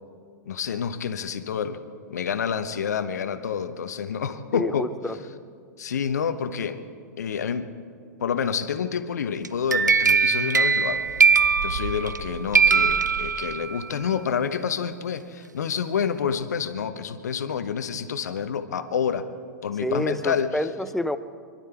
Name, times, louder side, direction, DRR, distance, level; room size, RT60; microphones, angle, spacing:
voice 1, 0.5-1.8 2.1-4.9 5.8-6.8 7.2-7.7 8.2-11.1 11.6-19.2 19.6-20.5, left 7 dB, 65° left, 10 dB, 1.1 m, -28 dB
voice 2, 4.5-5.2 19.8-21.2, left 1 dB, 5° left, 11 dB, 0.7 m, -28 dB
sound 1, 9.4-12.2 12.5-13.8, right 5 dB, 85° right, 0.4 m, -21 dB
sound 2, 10.9-13.7, right 5 dB, 55° right, 1.3 m, -36 dB
26.0 x 12.0 x 4.6 m, 2.1 s
figure-of-eight pair, 100°, 10 cm